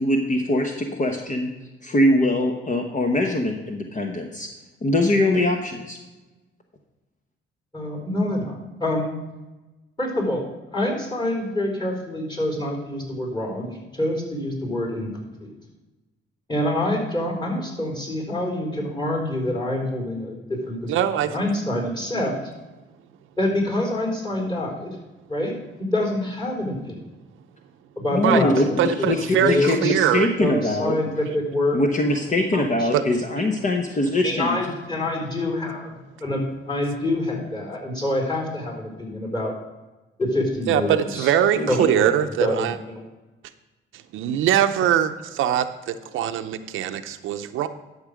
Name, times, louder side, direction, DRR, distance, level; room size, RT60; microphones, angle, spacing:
voice 1, 0.0-1.5 1.8-4.5 4.8-6.0 28.1-31.0 31.7-34.6 41.6-41.9, left 1 dB, 40° left, 2 dB, 1.2 m, -22 dB
voice 2, 7.7-8.5 8.8-9.1 10.0-10.4 10.7-15.5 16.5-21.0 21.3-22.3 23.4-25.0 25.3-25.5 25.8-27.0 28.0-28.8 29.3-30.0 30.4-31.8 32.5-32.9 34.2-35.9 36.2-39.5 40.2-41.3 41.7-43.0, left 1 dB, 20° left, 0 dB, 4.2 m, -26 dB
voice 3, 20.9-21.3 28.2-28.4 28.8-30.3 32.9-33.0 40.7-42.7 44.1-47.7, right 10 dB, 85° right, 9 dB, 0.7 m, -22 dB
12.0 x 6.7 x 5.0 m, 1.1 s
cardioid pair, 90°, 20 cm